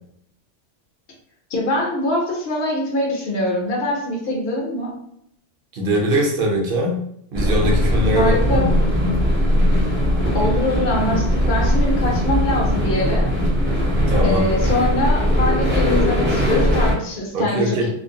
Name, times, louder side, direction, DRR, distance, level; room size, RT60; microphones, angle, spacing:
voice 1, 1.5-5.0 8.1-8.7 10.3-13.3 14.2-17.9, left 1 dB, 60° left, -3 dB, 0.8 m, -23 dB
voice 2, 5.7-7.0 7.3-8.7 14.1-14.4 17.3-17.9, equal, 55° right, -1 dB, 0.8 m, -21 dB
sound 1, 7.3-17.0, equal, 20° right, 0.3 m, -19 dB
2.4 x 2.1 x 2.6 m, 0.71 s
omnidirectional pair, 1.3 m